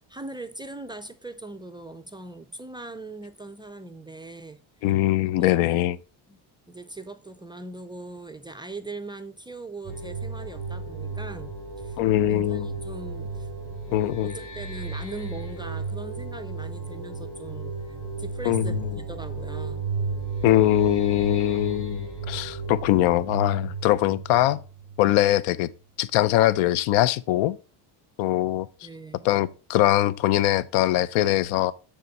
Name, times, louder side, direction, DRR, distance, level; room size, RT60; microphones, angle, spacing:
voice 1, 0.1-4.6 5.2-5.6 6.3-6.4 6.7-12.0 12.3-13.5 13.9-19.9 28.8-29.3, right 2 dB, 10° right, 0.3 m, -40 dB
voice 2, 4.8-6.0 12.0-12.7 13.9-14.4 18.5-18.9 20.4-24.6 25.0-25.7 26.0-27.6 28.2-28.7 29.2-31.7, left 14 dB, 80° left, 0.5 m, -22 dB
sound 1, 9.8-25.3, right 4 dB, 40° left, 3.0 m, -34 dB
6.8 x 3.7 x 5.2 m
cardioid pair, 115°, 48 cm